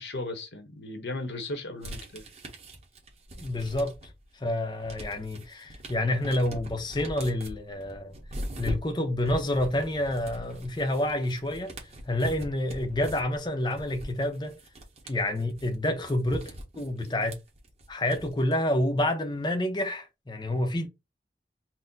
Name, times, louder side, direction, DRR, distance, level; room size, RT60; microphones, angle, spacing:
voice 1, 0.0-2.2 17.0-17.1, left 2 dB, 75° left, 1.1 m, -36 dB
sound 1, 1.8-4.2 4.6-18.5, equal, 35° right, 1.1 m, -41 dB
voice 2, 3.4-4.0 4.3-8.1 8.6-14.5 15.1-17.4 17.9-20.9, left 1 dB, 25° left, 0.6 m, -28 dB
4.2 x 2.1 x 3.8 m
head